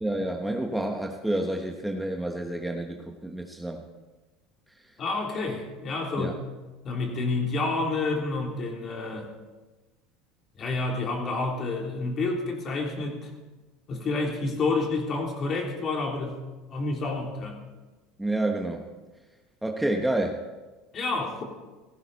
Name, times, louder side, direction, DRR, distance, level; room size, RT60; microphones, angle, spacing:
voice 1, 0.0-3.8 6.2-6.3 18.2-18.9 19.6-20.4, right 1 dB, 5° right, 1 dB, 1.2 m, -29 dB
voice 2, 5.0-6.4 6.8-9.3 10.6-13.3 13.9-16.4 16.7-17.6 20.9-21.4, left 3 dB, 40° left, 1 dB, 3.4 m, -29 dB
17.0 x 14.5 x 4.2 m, 1.2 s
supercardioid pair, 115°, 0 cm